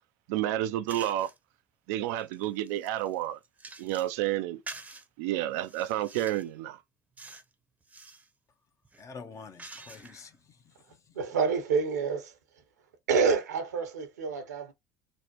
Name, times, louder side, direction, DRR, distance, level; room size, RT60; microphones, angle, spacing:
voice 1, 0.3-1.3 1.9-3.4 3.8-4.6 5.2-6.8, right 13 dB, 70° right, 0.4 m, -30 dB
sound 1, 0.9-1.4 1.9-4.2 4.7-5.1 5.6-6.5 7.2-7.5 7.8-8.3 8.8-10.3, right 3 dB, 15° right, 0.7 m, -47 dB
voice 2, 9.0-11.0, left 5 dB, 35° left, 0.8 m, -47 dB
voice 3, 11.1-12.3 13.1-14.7, right 5 dB, 90° right, 0.9 m, -27 dB
3.0 x 2.1 x 2.8 m
hypercardioid pair, 70°, 9 cm